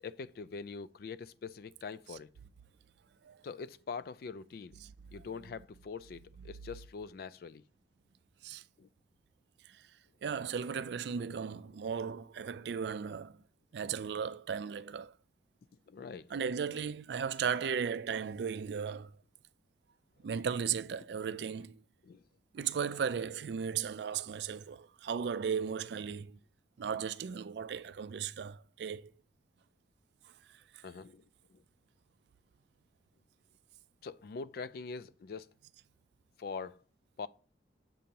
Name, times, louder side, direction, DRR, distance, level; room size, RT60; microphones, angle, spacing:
voice 1, 0.0-2.3 3.4-4.8 5.1-7.6 8.8-8.9 15.9-16.3 22.0-22.2 30.8-31.3 31.5-31.6 34.0-35.5 36.4-36.8 37.2-37.3, left 5 dB, 55° left, 0.3 m, -43 dB
voice 2, 10.2-13.4 13.7-15.2 16.3-19.1 20.2-21.8 22.5-26.4 26.8-29.1, right 7 dB, 65° right, 0.3 m, -36 dB
7.4 x 2.9 x 5.2 m
head